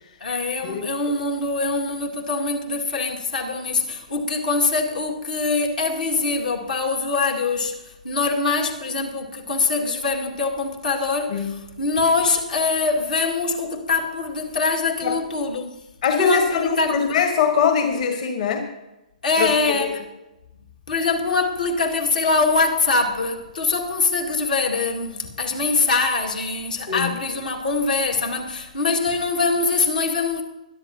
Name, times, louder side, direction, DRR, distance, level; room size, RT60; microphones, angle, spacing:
voice 1, 0.2-15.8 16.2-17.0 19.2-20.0 20.9-30.4, left 3 dB, 85° left, 2.2 m, -23 dB
voice 2, 16.0-18.7 19.4-19.9 26.9-27.1, left 6 dB, 60° left, 1.7 m, -22 dB
22.0 x 11.0 x 2.9 m
hypercardioid pair, 130°, 4 cm